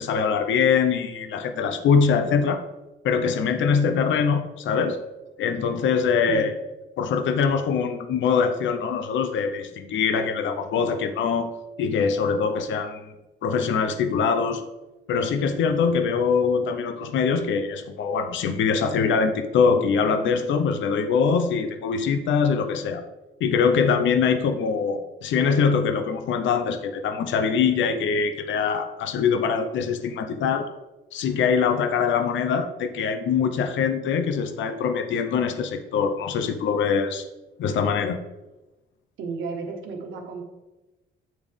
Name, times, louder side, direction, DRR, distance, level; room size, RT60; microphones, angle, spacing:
voice 1, 0.0-2.6 3.0-5.0 5.4-6.5 7.0-11.5 11.8-13.1 13.4-14.6 15.1-23.0 23.4-30.7 31.1-37.2 37.6-38.2, left 6 dB, 70° left, 8 dB, 0.6 m, -23 dB
voice 2, 6.2-6.6 39.2-40.4, right 4 dB, 85° right, 2 dB, 1.2 m, -33 dB
8.5 x 3.4 x 3.5 m, 1.0 s
cardioid pair, 90°, 20 cm